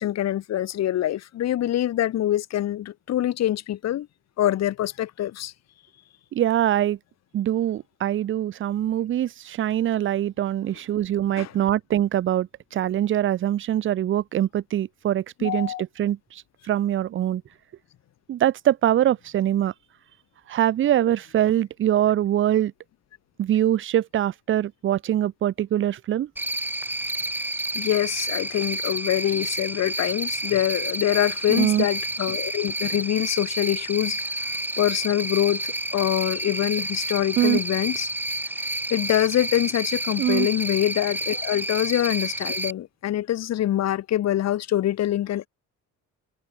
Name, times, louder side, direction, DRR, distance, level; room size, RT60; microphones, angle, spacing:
voice 1, 0.0-4.1 4.4-5.5 11.4-11.5 15.4-15.8 27.7-38.1 38.9-45.5, left 12 dB, 55° left, 1.2 m, -25 dB
voice 2, 6.3-7.0 7.3-17.4 18.3-19.7 20.5-22.7 23.4-26.3 31.5-31.9 37.4-37.6 40.2-40.5, right 11 dB, 40° right, 0.6 m, -23 dB
Cricket, 26.4-42.7, right 1 dB, 5° right, 1.3 m, -30 dB
cardioid pair, 100°, 31 cm